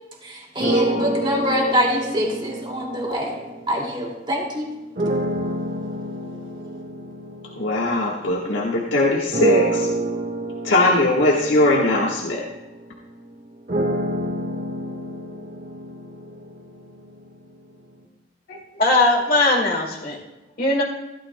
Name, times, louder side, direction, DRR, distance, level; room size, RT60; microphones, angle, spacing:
voice 1, 0.2-3.4 3.7-4.7, equal, 25° right, 0 dB, 2.3 m, -24 dB
sound 1, 0.6-4.2 5.0-8.7 9.3-17.3, right 1 dB, 50° right, 1.4 m, -28 dB
voice 2, 7.6-9.9 10.6-12.5, left 2 dB, 80° left, -3 dB, 1.4 m, -20 dB
voice 3, 18.5-20.2 20.6-20.8, left 2 dB, 50° left, 0 dB, 2.1 m, -20 dB
15.0 x 12.5 x 2.2 m, 1.1 s
head